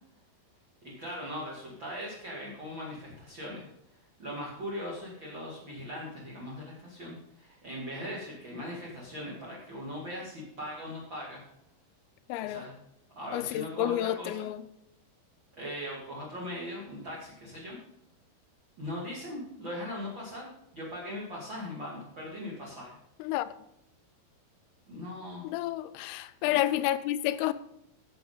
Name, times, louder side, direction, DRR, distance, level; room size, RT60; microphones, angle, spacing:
voice 1, 0.8-11.4 12.4-12.8 13.2-14.5 15.6-17.8 18.8-23.0 24.9-25.4 26.5-26.6, left 1 dB, 40° right, 1.9 m, -40 dB
voice 2, 12.3-12.6 13.3-14.6 23.2-23.5 25.4-27.5, left 14 dB, 90° left, 3.3 m, -30 dB
11.5 x 7.0 x 5.6 m
omnidirectional pair, 5.8 m